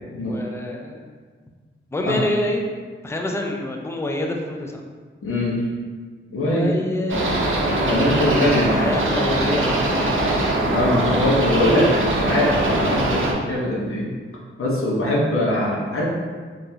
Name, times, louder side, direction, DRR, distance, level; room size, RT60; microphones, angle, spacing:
voice 1, 0.0-1.0 1.9-2.7 3.0-4.8 6.5-7.5 7.8-10.4 11.6-12.0, left 1 dB, 10° left, 1 dB, 0.3 m, -27 dB
voice 2, 5.2-5.6 6.3-6.7 7.9-8.8 10.7-11.9 12.2-14.1 14.6-16.0, left 1 dB, 85° left, -4 dB, 0.8 m, -22 dB
sound 1, 7.1-13.3, right 1 dB, 70° right, 0.6 m, -21 dB
3.8 x 2.4 x 2.8 m, 1.5 s
wide cardioid pair, 115°, 21 cm